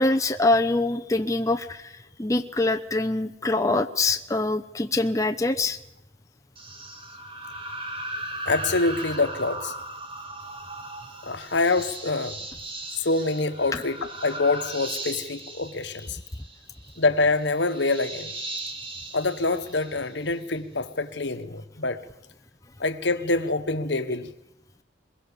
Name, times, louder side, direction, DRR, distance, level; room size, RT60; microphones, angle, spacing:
voice 1, 0.0-1.9 2.2-5.8 13.7-13.8, left 2 dB, 15° left, 0.8 m, -24 dB
sound 1, 6.6-20.4, right 2 dB, 30° right, 2.5 m, -37 dB
voice 2, 8.4-9.7 11.2-12.3 13.0-16.2 17.0-18.3 19.1-22.0 22.8-24.3, left 3 dB, 70° left, 1.4 m, -25 dB
22.5 x 21.5 x 7.0 m
head